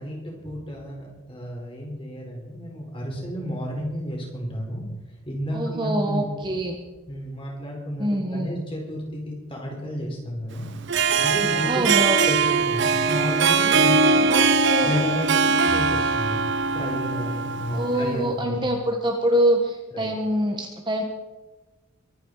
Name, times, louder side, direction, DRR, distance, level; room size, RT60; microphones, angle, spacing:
voice 1, 0.0-4.8 5.2-6.3 7.1-10.7 11.1-11.7 12.0-12.4 12.7-14.3 14.8-16.4 16.7-18.6 19.9-20.1, equal, 25° left, -1 dB, 4.7 m, -31 dB
voice 2, 5.5-6.8 8.0-8.5 11.6-12.2 14.3-14.9 17.7-21.0, right 1 dB, 20° right, 2 dB, 1.4 m, -25 dB
Harp, 10.7-18.1, right 5 dB, 55° right, 0.8 m, -21 dB
23.0 x 9.7 x 4.9 m, 1.2 s
head